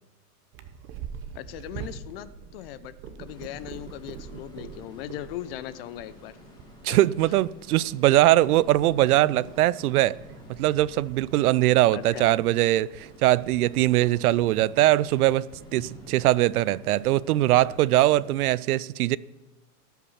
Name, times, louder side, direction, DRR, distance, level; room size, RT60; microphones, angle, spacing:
Purr, 0.5-18.5, right 7 dB, 25° right, 0.9 m, -46 dB
voice 1, 1.3-6.4 6.9-7.0 11.9-12.3, left 13 dB, 40° left, 0.6 m, -39 dB
sound 1, 3.2-18.3, left 1 dB, 10° left, 2.5 m, -50 dB
voice 2, 6.8-10.2 10.6-19.2, right 15 dB, 65° right, 0.5 m, -21 dB
17.5 x 5.9 x 7.1 m
supercardioid pair, 145°, 48 cm